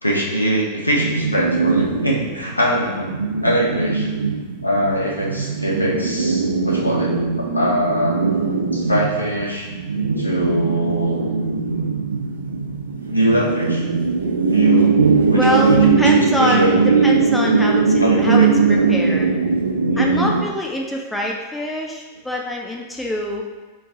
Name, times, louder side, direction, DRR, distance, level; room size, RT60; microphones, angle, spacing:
voice 1, 0.0-3.1 3.4-4.1 4.6-8.3 8.7-9.7 10.2-11.3 12.9-13.8 14.5-15.0 15.3-17.0 18.0-18.8 19.8-20.4, equal, 85° left, -3 dB, 0.6 m, -22 dB
sound 1, 1.0-20.4, right 4 dB, 70° right, 0.3 m, -20 dB
voice 2, 15.3-19.4 20.0-23.5, left 1 dB, 5° left, -1 dB, 0.5 m, -24 dB
3.2 x 2.2 x 3.5 m, 1.3 s
figure-of-eight pair, 90°, 0 cm